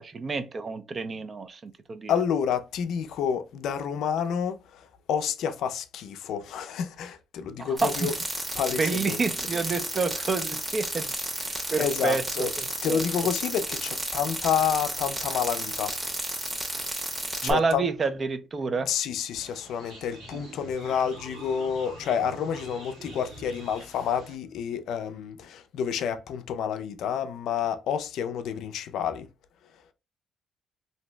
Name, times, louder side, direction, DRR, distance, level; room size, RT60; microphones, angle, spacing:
voice 1, 0.0-2.1 7.6-8.1 8.8-11.1 11.7-13.0 17.4-18.9, right 4 dB, 40° right, 0.4 m, -29 dB
voice 2, 2.1-8.1 8.6-9.2 11.8-12.5 12.8-15.9 17.4-17.9 18.9-29.3, left 8 dB, 80° left, 0.4 m, -29 dB
sound 1, 7.8-17.5, right 1 dB, 20° right, 0.7 m, -32 dB
sound 2, 19.3-24.3, right 2 dB, 90° right, 1.1 m, -45 dB
2.6 x 2.0 x 3.1 m
cardioid pair, 90°, 0 cm